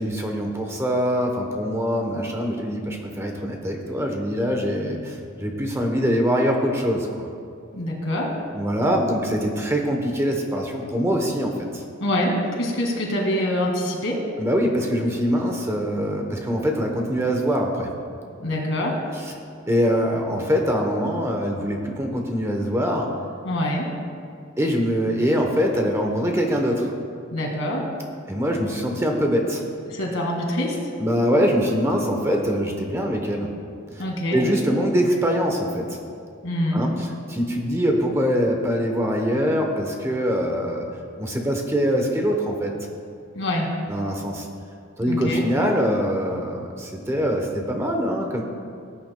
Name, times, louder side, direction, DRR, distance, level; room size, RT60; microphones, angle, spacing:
voice 1, 0.0-7.3 8.5-11.8 14.4-17.9 19.7-23.1 24.6-26.9 28.3-29.6 31.0-33.5 34.3-36.0 36.7-36.9 37.3-40.8 41.2-42.7 43.9-44.5 45.0-48.4, equal, 15° right, 2 dB, 0.9 m, -23 dB
voice 2, 7.7-8.4 12.0-14.3 18.4-19.0 23.4-23.9 27.3-27.9 29.9-30.9 34.0-34.4 36.4-36.9 43.3-43.8 45.0-45.4, left 1 dB, 70° left, 0 dB, 2.0 m, -25 dB
18.5 x 9.3 x 2.2 m, 2.3 s
head